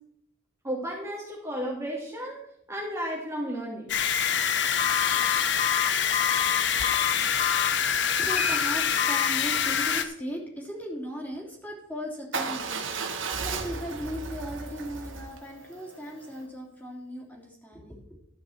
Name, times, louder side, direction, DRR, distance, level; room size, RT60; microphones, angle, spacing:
voice 1, 0.6-2.4 2.7-3.9, equal, 15° right, -4 dB, 2.2 m, -33 dB
sound 1, 3.9-10.0, left 7 dB, 60° left, 0.9 m, -25 dB
Telephone, 4.8-7.7 8.3-8.6 9.0-9.3, left 9 dB, 35° left, 0.4 m, -29 dB
voice 2, 7.9-18.2, equal, 10° left, -2 dB, 3.1 m, -38 dB
Motorcycle / Engine starting / Idling, 12.3-16.4, right 4 dB, 75° right, 1.7 m, -35 dB
12.5 x 8.8 x 4.4 m, 0.70 s
head